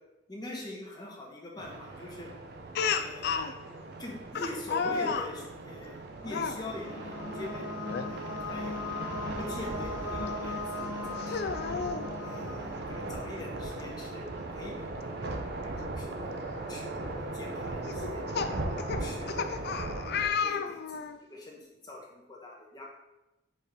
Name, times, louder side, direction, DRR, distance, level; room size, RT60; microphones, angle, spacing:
voice 1, 0.3-2.3 2.8-3.7 4.0-7.8 8.0-8.9 9.4-11.4 12.2-14.8 15.0-16.3 16.7-18.2 18.7-22.8, left 2 dB, 20° left, -2 dB, 1.2 m, -44 dB
sound 1, 1.6-20.3, right 2 dB, 60° right, 0.8 m, -38 dB
Speech, 2.7-3.5 4.3-5.3 6.2-6.6 7.8-8.1 8.5-8.6 10.3-10.4 11.2-12.0 13.4-13.5 13.8-13.9 15.8-15.9 16.5-16.7 17.8-21.2, left 6 dB, 55° left, 0.4 m, -32 dB
sound 2, 6.1-13.8, left 2 dB, 75° left, 1.2 m, -39 dB
5.0 x 4.3 x 5.0 m, 0.98 s
head